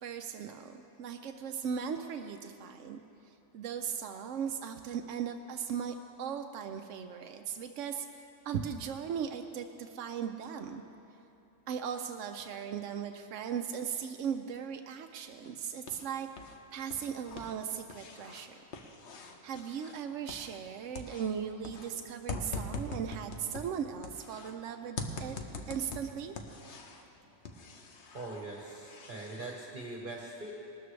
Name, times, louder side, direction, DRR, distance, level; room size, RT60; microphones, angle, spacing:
voice 1, 0.0-3.0 3.5-10.8 11.7-16.3 16.7-18.6 19.4-25.4 25.7-26.4, right 7 dB, 90° right, 6 dB, 0.9 m, -38 dB
sound 1, 15.4-16.6 16.8-20.7 20.9-24.6 25.0-27.1 27.5-29.6, left 3 dB, 70° left, 1.2 m, -43 dB
voice 2, 28.1-30.5, right 2 dB, 45° right, -3 dB, 1.3 m, -42 dB
19.5 x 13.0 x 3.2 m, 2.8 s
omnidirectional pair, 1.2 m